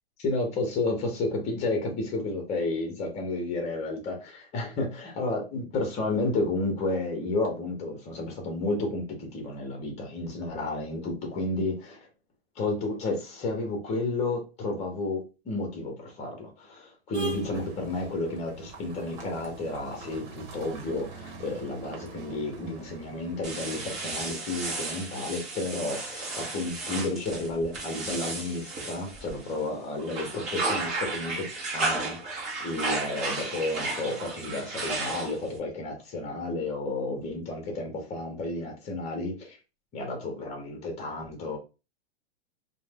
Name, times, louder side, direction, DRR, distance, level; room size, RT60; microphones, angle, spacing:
voice 1, 0.2-12.1 12.6-32.2 32.6-39.6 39.9-41.6, left 2 dB, 20° left, 0.9 m, -31 dB
sound 1, 17.1-24.4, right 3 dB, 55° right, 1.1 m, -42 dB
sound 2, 23.4-29.6 30.0-35.6, right 3 dB, 25° right, 0.9 m, -33 dB
2.6 x 2.2 x 3.4 m
hypercardioid pair, 145°, 31 cm